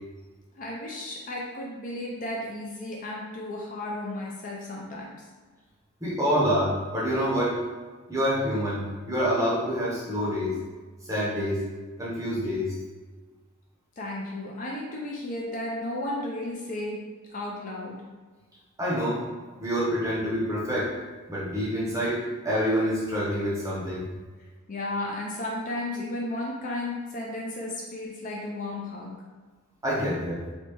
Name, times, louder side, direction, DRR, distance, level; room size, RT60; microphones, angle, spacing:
voice 1, 0.6-5.3 14.0-18.0 24.7-29.1, left 1 dB, 35° left, -3 dB, 0.4 m, -34 dB
voice 2, 6.0-7.6 8.1-10.6 11.0-11.6 12.0-12.8 18.8-19.2 19.6-20.9 21.3-24.1 29.8-30.4, equal, 15° right, -7 dB, 0.7 m, -27 dB
3.3 x 2.7 x 2.9 m, 1.4 s
head